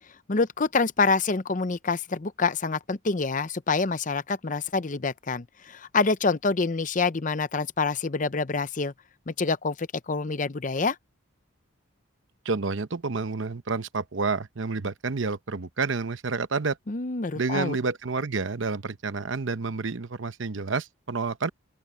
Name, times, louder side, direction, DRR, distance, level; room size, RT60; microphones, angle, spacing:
voice 1, 0.3-8.9 9.3-11.0 16.9-17.8, left 4 dB, 40° left, 0.7 m, -26 dB
voice 2, 12.4-16.8 17.3-21.5, right 4 dB, 70° right, 0.8 m, -29 dB
open air
head